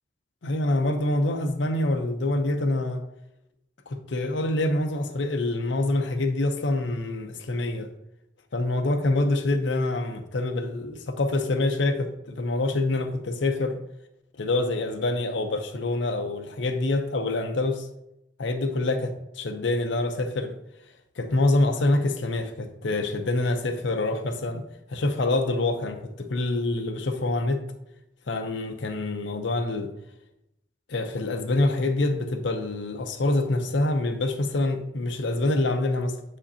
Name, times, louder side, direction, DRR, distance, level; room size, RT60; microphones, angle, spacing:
voice 1, 0.4-3.0 3.9-7.9 8.5-13.8 14.4-17.9 18.4-20.5 21.2-27.6 28.3-29.9 30.9-36.2, left 2 dB, 70° left, 0.6 m, -26 dB
7.7 x 5.0 x 2.7 m
head